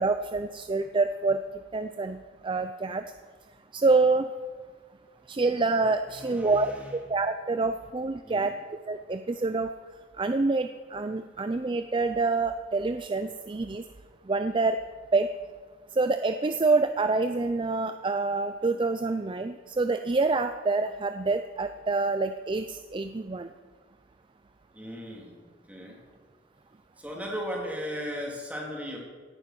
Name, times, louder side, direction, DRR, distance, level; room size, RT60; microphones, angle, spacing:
voice 1, 0.0-1.4 1.7-3.0 3.7-4.3 5.3-8.5 8.9-9.7 10.2-13.8 14.3-14.8 15.1-15.3 15.9-23.5, right 3 dB, 25° right, 9 dB, 0.4 m, -27 dB
voice 2, 6.1-6.9 8.2-8.5 24.7-25.4 25.7-26.0 27.0-29.0, equal, 10° right, -2 dB, 3.3 m, -36 dB
17.0 x 10.0 x 6.1 m, 1.5 s
head